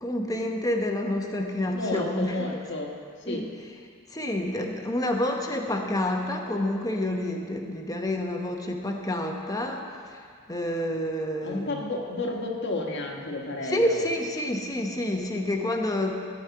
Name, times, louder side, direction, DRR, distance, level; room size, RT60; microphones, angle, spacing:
voice 1, 0.0-2.6 3.2-3.5 4.1-10.2 10.5-11.8 13.6-16.1, left 1 dB, 15° left, 2 dB, 1.0 m, -28 dB
voice 2, 1.7-2.9 3.3-3.5 11.4-14.0, left 2 dB, 55° left, 1 dB, 1.4 m, -31 dB
14.5 x 5.3 x 9.5 m, 2.2 s
head